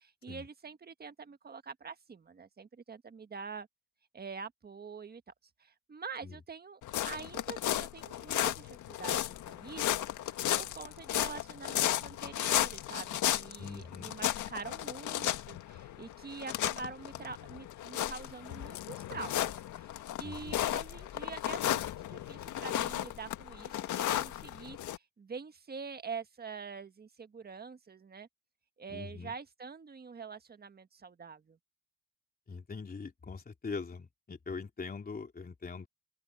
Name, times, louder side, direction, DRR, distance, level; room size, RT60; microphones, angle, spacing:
voice 1, 0.0-3.7 4.1-5.2 5.6-9.9 10.2-19.9 20.2-28.3 28.8-31.6, right 5 dB, 30° right, 1.6 m, -45 dB
sound 1, 6.8-25.0, left 12 dB, 80° left, 1.7 m, -34 dB
voice 2, 13.6-14.2 20.2-20.6 28.9-29.3 32.5-35.9, left 4 dB, 30° left, 3.5 m, -42 dB
open air
cardioid pair, 90°, 30 cm